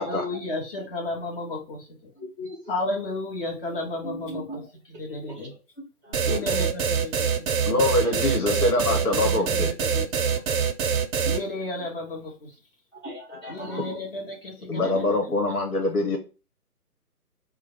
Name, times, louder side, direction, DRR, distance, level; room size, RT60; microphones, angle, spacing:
voice 1, 0.0-1.9 2.7-4.6 4.9-5.5 6.3-7.4 8.4-10.4 11.2-12.5 13.5-15.3, left 2 dB, 35° left, -1 dB, 1.2 m, -33 dB
voice 2, 2.2-2.6 4.0-4.6 5.3-5.4 6.0-6.6 8.0-8.1 11.2-11.5 12.9-14.1 15.0-15.4, equal, 20° left, -8 dB, 0.5 m, -38 dB
sound 1, 6.1-11.4, right 6 dB, 60° right, 0.6 m, -24 dB
voice 3, 7.6-9.7 14.7-16.2, left 2 dB, 70° left, 2 dB, 1.6 m, -24 dB
3.2 x 2.3 x 3.8 m, 0.31 s
figure-of-eight pair, 145°, 47 cm